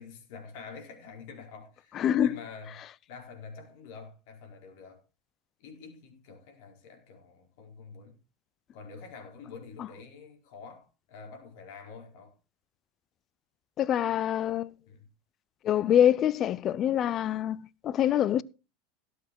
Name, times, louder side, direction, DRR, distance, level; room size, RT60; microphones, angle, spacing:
voice 1, 0.0-5.0 5.6-8.2 8.7-12.4 14.9-15.1, left 5 dB, 60° left, 4.5 m, -47 dB
voice 2, 2.0-2.4 13.8-14.7 15.6-18.4, left 10 dB, 35° left, 0.6 m, -25 dB
17.0 x 8.5 x 4.5 m
figure-of-eight pair, 80°, 0 cm